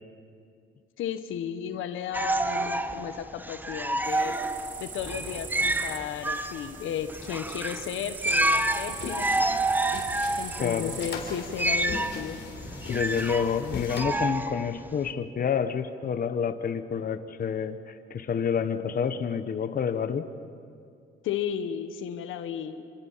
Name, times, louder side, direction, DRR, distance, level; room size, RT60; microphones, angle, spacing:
voice 1, 1.0-4.4 4.8-9.7 10.4-12.4 21.2-22.8, left 9 dB, 85° left, 9 dB, 1.3 m, -34 dB
sound 1, 2.1-15.1, right 2 dB, 10° right, 1.0 m, -29 dB
sound 2, 4.0-11.8, right 6 dB, 40° right, 1.2 m, -42 dB
sound 3, 8.4-14.0, left 5 dB, 65° left, 3.9 m, -40 dB
voice 2, 10.6-11.0 12.9-20.3, left 7 dB, 45° left, 9 dB, 1.2 m, -28 dB
27.5 x 26.0 x 5.7 m, 2.4 s
cardioid pair, 90°, 20 cm